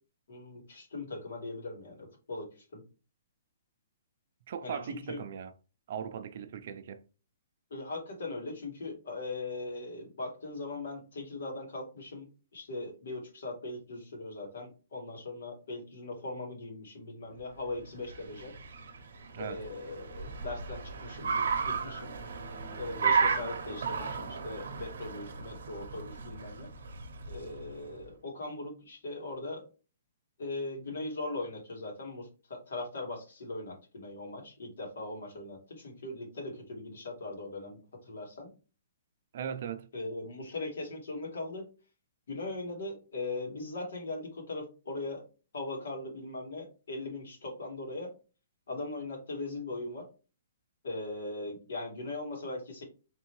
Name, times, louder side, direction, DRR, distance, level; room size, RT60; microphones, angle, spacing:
voice 1, 0.3-2.8 4.6-5.2 7.7-12.3 12.5-18.5 19.4-22.1 22.7-26.7 27.3-29.6 30.4-38.5 39.9-41.6 42.3-45.2 45.5-48.1 48.7-50.1 50.8-52.8, left 2 dB, 70° left, 2.2 m, -40 dB
voice 2, 4.5-5.5 5.9-7.0 19.3-19.6 39.3-39.9, right 8 dB, 40° right, 0.4 m, -38 dB
Car, 17.7-27.9, right 5 dB, 70° right, 0.7 m, -34 dB
3.6 x 3.4 x 3.1 m
hypercardioid pair, 175°, 0 cm